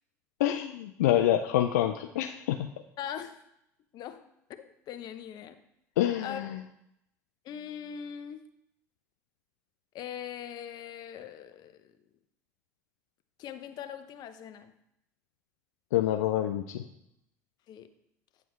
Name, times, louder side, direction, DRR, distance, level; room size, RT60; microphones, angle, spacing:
voice 1, 0.4-2.7 6.0-6.6 15.9-16.8, left 12 dB, 85° left, 5 dB, 0.4 m, -27 dB
voice 2, 3.0-3.4 3.9-4.2 4.6-5.6 6.2-6.4 7.4-8.4 9.9-11.9 13.4-14.7 17.7-17.9, left 9 dB, 55° left, 10 dB, 0.7 m, -41 dB
9.2 x 7.0 x 3.2 m, 0.78 s
hypercardioid pair, 75°, 8 cm